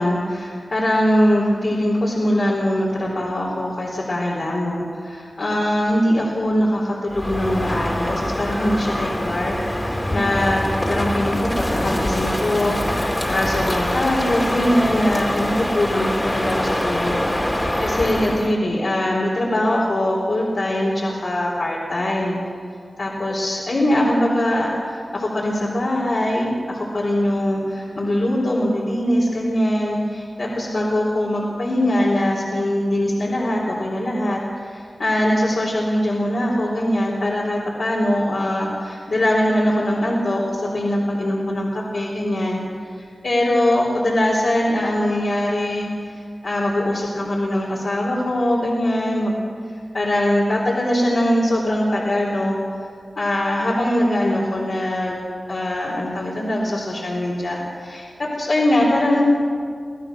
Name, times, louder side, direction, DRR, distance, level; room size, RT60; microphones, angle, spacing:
voice 1, 0.0-22.3 23.0-34.4 34.7-42.6 43.0-45.9 46.4-49.3 49.9-52.6 53.2-55.2 55.5-59.2, left 1 dB, 70° left, -5 dB, 4.3 m, -22 dB
Crow, 7.1-18.6, left 1 dB, 20° left, 2.5 m, -24 dB
26.5 x 17.0 x 6.4 m, 2.1 s
wide cardioid pair, 90°, 0 cm